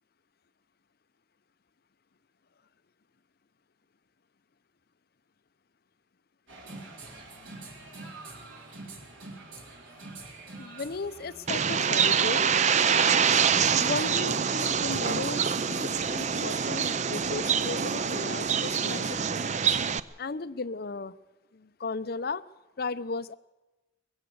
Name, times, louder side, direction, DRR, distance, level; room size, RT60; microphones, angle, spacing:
sound 1, 6.5-19.9, right 2 dB, 85° right, 4.2 m, -46 dB
voice 1, 10.6-12.5 13.7-19.4 20.2-21.1 21.5-22.4 22.8-23.4, left 3 dB, 50° left, 13 dB, 0.6 m, -35 dB
Bird, 11.5-20.0, right 7 dB, 40° right, 0.5 m, -25 dB
21.0 x 15.5 x 7.9 m, 1.1 s
head